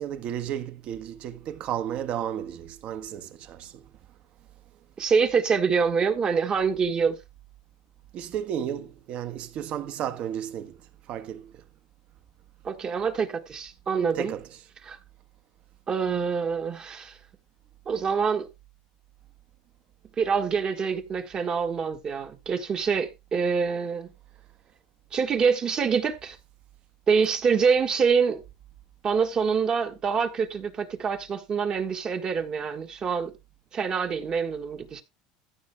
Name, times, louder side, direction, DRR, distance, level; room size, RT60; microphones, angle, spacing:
voice 1, 0.0-3.8 8.1-10.8 11.1-11.6 14.1-14.5, right 10 dB, 50° right, 1.5 m, -33 dB
voice 2, 5.0-7.2 12.6-14.3 14.8-15.0 15.9-17.2 17.9-18.5 20.2-24.1 25.1-26.4 27.1-28.4 29.0-33.3 33.7-35.0, right 6 dB, 30° right, 1.5 m, -25 dB
14.5 x 6.3 x 3.5 m
supercardioid pair, 120°, 3 cm